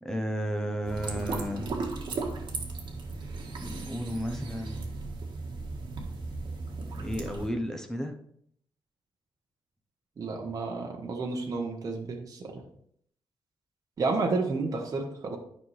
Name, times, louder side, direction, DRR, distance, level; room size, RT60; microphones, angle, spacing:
voice 1, 0.0-1.8 3.6-4.9 7.0-8.2, equal, 5° left, 5 dB, 0.8 m, -33 dB
sound 1, 0.8-7.5, right 3 dB, 55° right, 1.6 m, -36 dB
voice 2, 10.2-12.6 14.0-15.4, right 3 dB, 40° right, 1 dB, 1.1 m, -31 dB
10.5 x 5.6 x 3.3 m, 0.68 s
wide cardioid pair, 165°, 9 cm